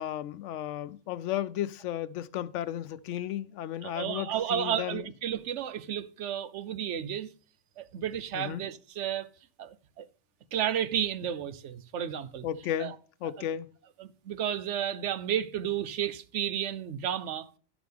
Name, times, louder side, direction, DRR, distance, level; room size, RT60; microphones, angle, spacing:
voice 1, 0.0-5.1 8.3-8.6 12.4-13.7, left 11 dB, 85° left, 0.9 m, -34 dB
voice 2, 3.8-7.3 7.8-9.3 9.6-10.1 10.5-12.5 12.8-12.9 14.0-17.5, right 10 dB, 80° right, 1.0 m, -32 dB
11.0 x 6.1 x 3.5 m
omnidirectional pair, 1.2 m